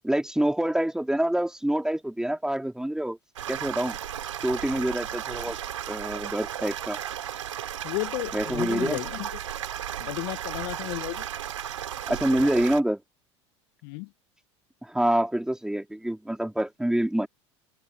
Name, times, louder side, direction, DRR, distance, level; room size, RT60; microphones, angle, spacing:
voice 1, 0.0-3.2 3.5-4.0 4.4-5.6 5.9-7.0 8.3-9.0 12.1-13.0 14.8-17.3, right 1 dB, 5° right, 3.7 m, -26 dB
sound 1, 3.3-12.8, right 10 dB, 85° right, 3.8 m, -34 dB
voice 2, 7.8-9.3 10.0-11.2 13.8-14.1, left 29 dB, 60° left, 1.1 m, -33 dB
open air
hypercardioid pair, 80°, 16 cm